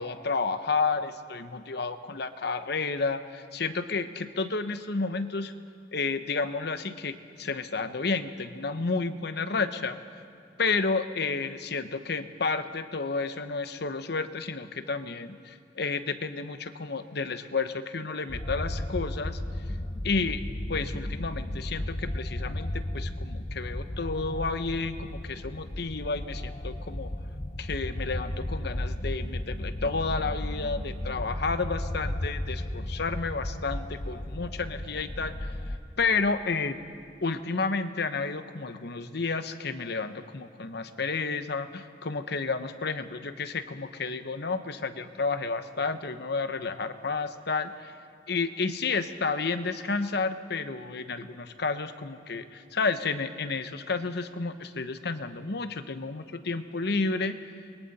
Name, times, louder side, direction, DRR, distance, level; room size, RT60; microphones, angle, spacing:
voice 1, 0.0-5.5 5.9-10.0 10.6-19.4 20.0-20.4 20.7-27.1 27.6-36.8 37.2-48.0 48.3-57.5, left 4 dB, 65° left, 10 dB, 1.0 m, -31 dB
sound 1, 18.3-35.8, left 1 dB, 30° left, 1.0 m, -34 dB
29.5 x 22.5 x 4.2 m, 2.5 s
head